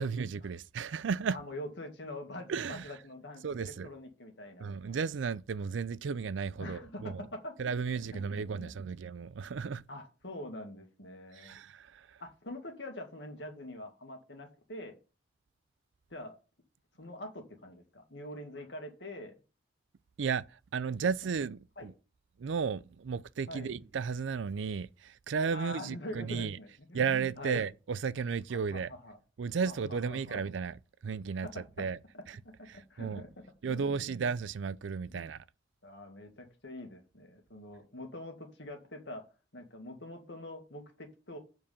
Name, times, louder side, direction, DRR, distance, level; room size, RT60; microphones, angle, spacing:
voice 1, 0.0-1.4 2.5-2.8 3.4-3.9 4.6-7.2 7.6-9.8 11.4-12.2 20.2-20.4 20.7-21.9 22.4-26.6 26.9-28.9 29.4-31.5 31.8-32.0 32.7-33.2 33.6-35.4, right 5 dB, 75° right, 0.4 m, -34 dB
voice 2, 1.3-5.0 6.6-7.5 8.0-8.9 9.9-11.6 12.2-15.0 16.1-16.4 17.0-19.4 21.8-21.9 23.5-23.8 25.5-27.7 28.5-29.2 29.7-30.4 31.4-31.5 32.1-32.2 32.6-33.3 33.6-34.1 35.1-35.3 35.8-39.2 39.5-41.4, left 1 dB, 65° left, 2.0 m, -45 dB
7.4 x 4.7 x 6.9 m
head